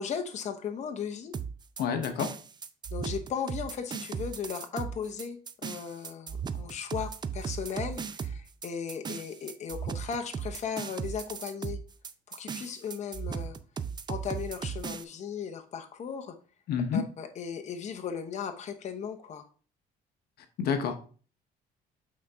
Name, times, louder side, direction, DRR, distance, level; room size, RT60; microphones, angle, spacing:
voice 1, 0.0-1.3 2.9-11.8 12.3-13.6 14.1-16.3 16.9-19.5, left 7 dB, 45° left, 5 dB, 0.9 m, -36 dB
sound 1, 1.3-15.0, right 6 dB, 25° right, 0.5 m, -37 dB
voice 2, 1.8-2.3 16.7-17.0 20.6-21.0, left 6 dB, 70° left, 7 dB, 1.0 m, -28 dB
8.4 x 3.9 x 3.5 m, 0.39 s
cardioid pair, 110°, 17 cm